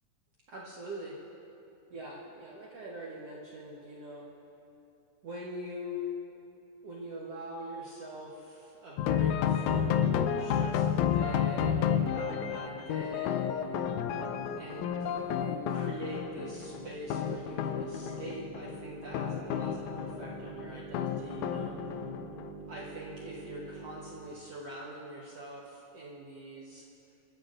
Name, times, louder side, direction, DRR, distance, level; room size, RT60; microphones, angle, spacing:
voice 1, 0.5-1.2 1.9-4.3 5.2-6.1 6.8-13.4 14.6-21.7 22.7-26.9, equal, 55° right, -5 dB, 2.0 m, -43 dB
sound 1, 9.0-22.5, left 8 dB, 75° left, 1.8 m, -31 dB
sound 2, 13.2-24.3, right 3 dB, 10° right, 2.6 m, -47 dB
26.0 x 14.5 x 2.6 m, 2.7 s
omnidirectional pair, 3.9 m